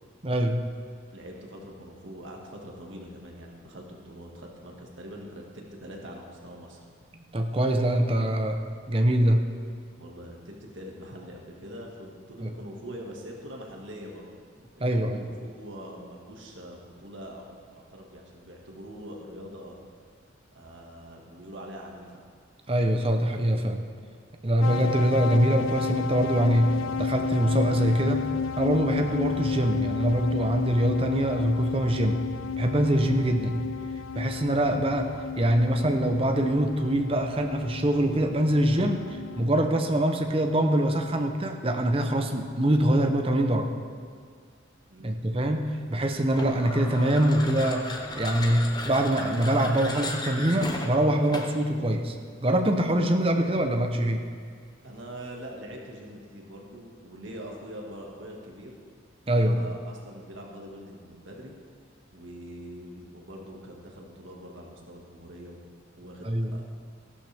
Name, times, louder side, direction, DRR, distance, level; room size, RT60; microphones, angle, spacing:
voice 1, 0.2-0.7 7.3-8.6 8.9-9.5 12.4-12.5 14.8-15.3 22.7-23.8 24.4-28.3 28.6-32.2 32.6-33.7 34.1-43.7 45.0-52.2 52.4-54.2 59.3-59.6 66.2-66.5, right 1 dB, 30° right, 5 dB, 0.8 m, -24 dB
voice 2, 1.1-6.8 10.0-14.3 14.7-19.8 20.5-22.2 44.9-45.3 54.8-58.7 59.4-61.5 62.1-65.6 66.0-66.6, equal, 70° right, 0 dB, 1.8 m, -43 dB
sound 1, 24.6-39.5, left 6 dB, 85° left, 0.3 m, -32 dB
sound 2, 46.3-51.7, left 2 dB, 20° left, 0.8 m, -36 dB
14.0 x 12.0 x 3.5 m, 2.2 s
head